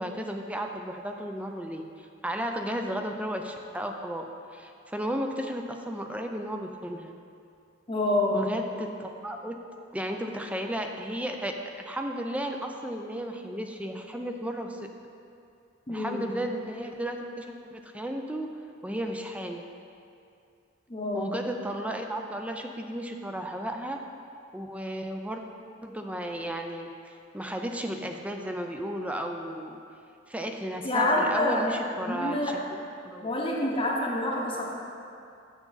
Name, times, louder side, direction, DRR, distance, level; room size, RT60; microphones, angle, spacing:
voice 1, 0.0-4.3 4.5-7.1 8.3-9.6 9.9-14.9 15.9-18.5 18.8-19.7 21.1-24.0 24.5-25.4 25.8-29.8 30.3-33.3, right 1 dB, 5° right, 4 dB, 0.4 m, -34 dB
voice 2, 7.9-8.5 15.9-16.3 20.9-21.3 30.8-31.7 32.0-32.5 33.2-34.7, left 1 dB, 25° left, -2 dB, 0.8 m, -27 dB
7.0 x 6.9 x 4.0 m, 2.5 s
head